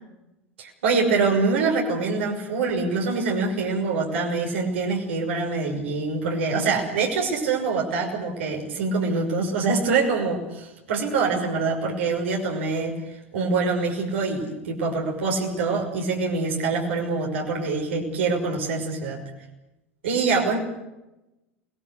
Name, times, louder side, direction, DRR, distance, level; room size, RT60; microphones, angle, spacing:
voice 1, 0.6-19.2 20.0-20.6, right 4 dB, 65° right, 0 dB, 6.1 m, -25 dB
28.5 x 20.5 x 6.8 m, 0.95 s
figure-of-eight pair, 80°, 7 cm